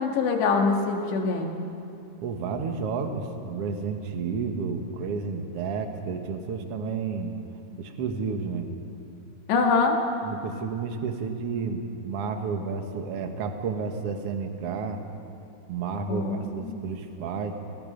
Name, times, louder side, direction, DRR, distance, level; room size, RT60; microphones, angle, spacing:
voice 1, 0.0-1.6 9.5-10.0 16.1-16.8, left 4 dB, 85° left, 2 dB, 4.1 m, -24 dB
voice 2, 2.2-7.3 7.8-8.7 10.2-15.0 15.7-17.6, right 5 dB, 65° right, 5 dB, 1.5 m, -31 dB
29.0 x 21.0 x 5.2 m, 2.8 s
omnidirectional pair, 4.8 m